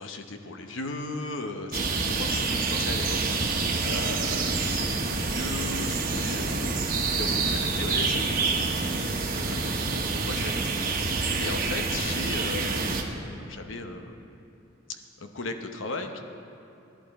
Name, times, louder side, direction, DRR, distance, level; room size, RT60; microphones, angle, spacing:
voice 1, 0.0-14.3 14.9-16.2, left 3 dB, 85° left, 6 dB, 0.9 m, -37 dB
sound 1, 1.7-13.0, right 3 dB, 45° right, 1.2 m, -27 dB
16.0 x 11.5 x 4.2 m, 2.9 s
head